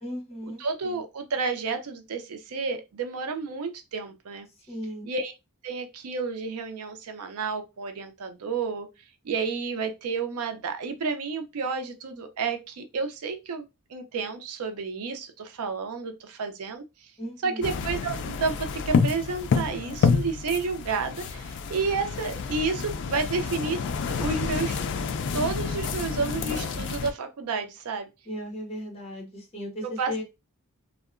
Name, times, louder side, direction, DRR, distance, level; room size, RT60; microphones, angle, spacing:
voice 1, 0.0-0.6 4.7-5.1 17.2-17.7 28.3-30.2, equal, 25° left, 1.0 m, -36 dB
voice 2, 0.6-4.5 5.1-5.3 5.6-8.9 9.2-13.6 13.9-17.1 17.4-23.8 24.1-24.8 25.3-28.1 29.8-30.2, right 4 dB, 75° right, 0.5 m, -31 dB
sound 1, 17.6-27.1, left 5 dB, 55° left, 0.3 m, -28 dB
2.7 x 2.1 x 2.4 m
head